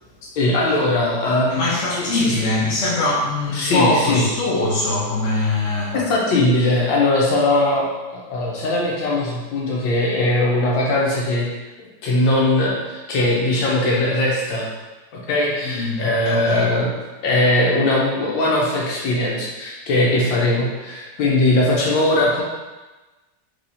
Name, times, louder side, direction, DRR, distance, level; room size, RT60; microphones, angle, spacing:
voice 1, 0.4-2.3 3.5-4.2 5.9-11.5 12.0-14.7 15.1-16.9 17.2-22.4, left 2 dB, 90° left, -3 dB, 1.7 m, -20 dB
voice 2, 1.5-6.0 15.6-16.7, left 2 dB, 50° left, -8 dB, 0.9 m, -22 dB
4.7 x 3.9 x 2.7 m, 1.2 s
omnidirectional pair, 2.0 m